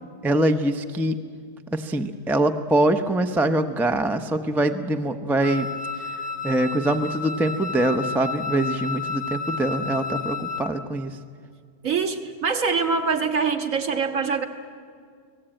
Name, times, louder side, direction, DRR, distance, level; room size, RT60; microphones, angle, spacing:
voice 1, 0.2-1.2 1.7-5.7 6.4-11.2, right 1 dB, ahead, 6 dB, 0.4 m, -23 dB
Wind instrument woodwind instrument, 5.4-10.8, left 4 dB, 25° right, 1.2 m, -31 dB
voice 2, 11.8-14.5, right 5 dB, 55° right, 5 dB, 1.9 m, -24 dB
29.0 x 19.0 x 9.0 m, 2.1 s
omnidirectional pair, 1.8 m